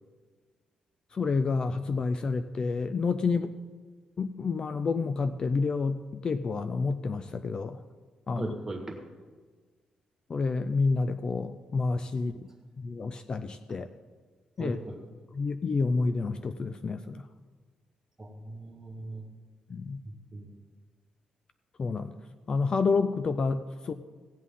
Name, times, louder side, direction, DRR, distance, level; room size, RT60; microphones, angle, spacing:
voice 1, 1.1-3.5 4.2-7.8 8.3-8.5 10.3-12.3 12.8-13.9 14.6-14.8 15.3-17.2 19.7-20.0 21.8-22.1 22.5-23.9, left 4 dB, 35° left, 11 dB, 0.4 m, -29 dB
voice 2, 8.4-9.0 14.6-15.0 18.2-19.2 20.3-20.5, right 2 dB, 15° right, 1 dB, 1.8 m, -38 dB
16.5 x 8.3 x 3.7 m, 1.4 s
cardioid pair, 135°, 2 cm